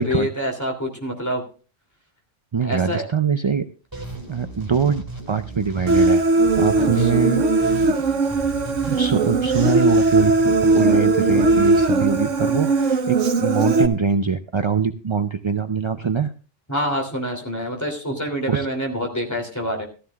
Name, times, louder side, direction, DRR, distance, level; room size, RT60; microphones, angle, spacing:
voice 1, 0.0-1.4 2.6-3.1 6.7-7.1 16.7-19.9, equal, 15° left, 2 dB, 3.0 m, -26 dB
voice 2, 2.5-3.6 4.3-6.2 6.6-7.4 8.8-16.3 18.5-18.7, right 6 dB, 45° right, 8 dB, 0.3 m, -23 dB
sound 1, 3.9-12.8, right 2 dB, 15° right, 2.4 m, -36 dB
Human voice, 5.9-13.9, right 3 dB, 85° right, 1.4 m, -19 dB
14.5 x 14.5 x 2.4 m, 0.36 s
omnidirectional pair, 1.2 m